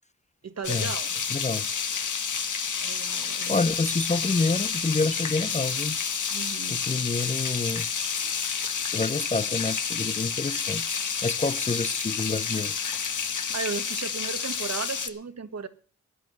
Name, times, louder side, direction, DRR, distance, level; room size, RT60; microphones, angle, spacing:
voice 1, 0.4-1.1 2.8-3.6 6.3-6.8 13.5-15.7, right 5 dB, 60° right, 1.5 m, -35 dB
sound 1, 0.6-15.1, left 6 dB, 75° left, 2.0 m, -29 dB
voice 2, 1.3-1.7 3.5-6.0 6.7-7.9 8.8-12.7, left 3 dB, 25° left, 0.6 m, -28 dB
15.5 x 11.0 x 6.3 m
wide cardioid pair, 125°, 30 cm